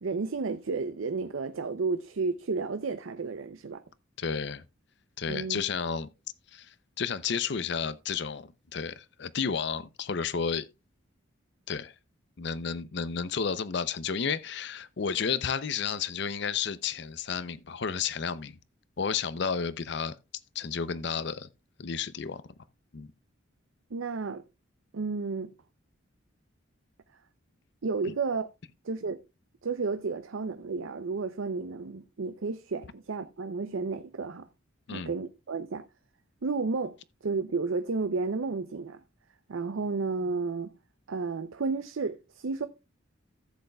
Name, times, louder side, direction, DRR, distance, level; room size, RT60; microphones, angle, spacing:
voice 1, 0.0-3.8 5.3-5.6 23.9-24.4 24.9-25.5 27.8-28.5 28.8-29.2 29.6-34.5 34.9-35.8 36.4-37.0 37.2-39.0 39.5-40.7 41.1-42.7, right 4 dB, 80° right, 0.6 m, -32 dB
voice 2, 4.2-4.6 5.2-6.1 6.5-10.7 11.7-11.9 12.4-18.6 19.0-20.2 20.5-21.5 21.8-22.4 22.9-23.1 34.9-35.1, left 6 dB, 60° left, 0.6 m, -32 dB
14.5 x 7.9 x 2.3 m
head